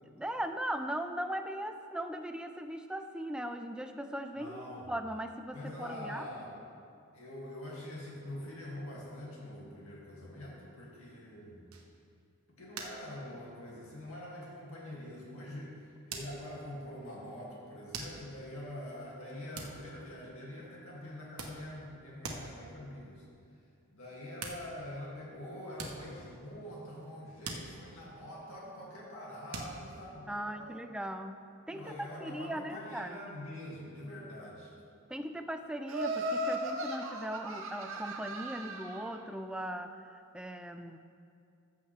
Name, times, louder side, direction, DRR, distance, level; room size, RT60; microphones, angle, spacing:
voice 1, 0.2-6.3 30.3-33.2 35.1-41.0, right 1 dB, 5° right, 7 dB, 0.4 m, -39 dB
voice 2, 4.3-4.9 5.5-6.6 7.1-11.6 12.6-23.3 23.9-30.8 31.7-34.7, left 1 dB, 70° left, -5 dB, 2.3 m, -45 dB
sound 1, 11.7-12.2 12.7-13.2 13.4-13.9 14.4-14.6 16.1-16.8 17.9-18.4 19.6-20.5 21.1-22.0 22.2-22.7 24.0-24.1 24.4-25.2 25.7-27.1 27.4-28.7 29.5-30.2, right 3 dB, 90° right, 1.1 m, -44 dB
Laughter, 35.9-39.1, right 1 dB, 65° right, 1.0 m, -36 dB
14.0 x 7.3 x 3.3 m, 2.5 s
head